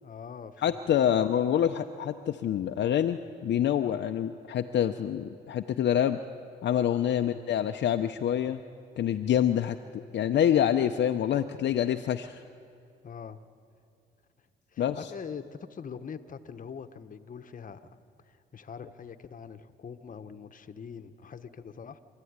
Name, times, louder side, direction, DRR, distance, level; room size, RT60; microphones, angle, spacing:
voice 1, 0.0-0.8 7.1-7.4 13.0-13.4 14.7-18.0 18.2-22.0, left 6 dB, 40° left, 9 dB, 1.2 m, -43 dB
voice 2, 0.6-6.2 6.6-8.6 9.0-12.4 14.8-15.0, left 10 dB, 60° left, 5 dB, 0.7 m, -26 dB
26.5 x 14.0 x 9.6 m, 2.4 s
cardioid pair, 90°, 20 cm